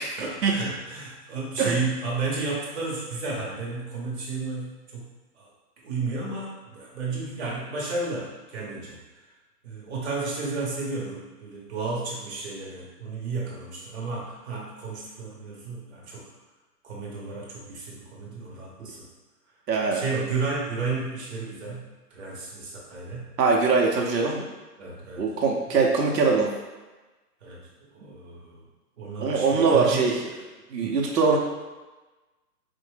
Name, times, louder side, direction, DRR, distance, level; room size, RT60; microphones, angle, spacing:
voice 1, 0.1-5.5 5.8-9.0 9.6-16.3 16.8-19.1 19.8-23.3 24.8-25.2 27.4-27.6 27.9-28.6 29.0-30.1 30.8-31.0, right 3 dB, 45° right, -4 dB, 1.0 m, -32 dB
voice 2, 19.7-20.0 23.4-24.4 25.2-26.5 29.2-30.1 30.7-31.4, right 4 dB, 90° right, -1 dB, 0.8 m, -22 dB
4.2 x 2.1 x 3.2 m, 1.2 s
hypercardioid pair, 175°, 48 cm